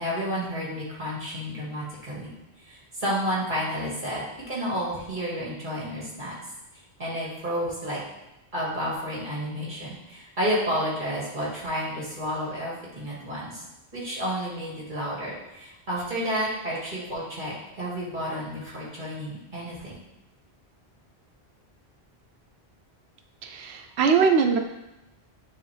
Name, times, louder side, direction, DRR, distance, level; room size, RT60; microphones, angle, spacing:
voice 1, 0.0-2.3 2.7-6.4 7.0-8.0 8.5-13.6 13.9-20.0, equal, 50° right, -6 dB, 2.3 m, -31 dB
voice 2, 23.4-24.6, right 5 dB, 85° right, 5 dB, 0.9 m, -21 dB
9.0 x 3.3 x 3.3 m, 0.95 s
omnidirectional pair, 1.1 m